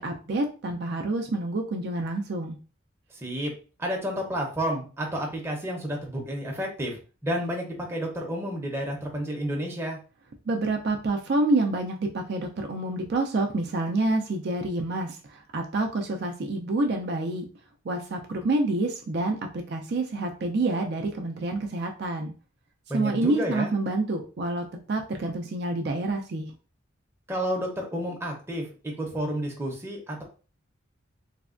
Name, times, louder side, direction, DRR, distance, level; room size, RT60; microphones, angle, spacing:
voice 1, 0.0-2.6 10.5-17.4 17.9-22.3 22.9-26.5, right 2 dB, 55° right, 3 dB, 0.4 m, -28 dB
voice 2, 3.2-3.5 3.8-7.0 7.2-10.0 22.9-23.7 27.3-28.7 29.0-30.2, equal, 10° right, -1 dB, 0.6 m, -30 dB
3.2 x 2.2 x 2.4 m, 0.35 s
head